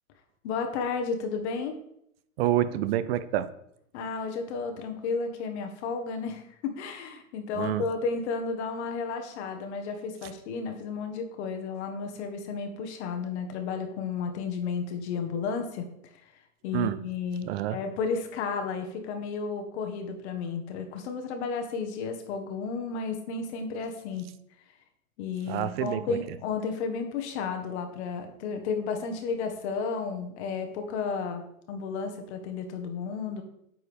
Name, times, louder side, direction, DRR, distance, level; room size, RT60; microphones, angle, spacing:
voice 1, 0.4-1.7 3.9-15.8 16.6-24.3 25.2-33.4, left 5 dB, 50° left, 5 dB, 1.3 m, -32 dB
voice 2, 2.4-3.5 7.5-7.9 16.7-17.0 17.4-17.8 25.5-26.2, right 12 dB, 45° right, 14 dB, 0.5 m, -28 dB
9.0 x 4.6 x 3.4 m, 0.75 s
hypercardioid pair, 120°, 42 cm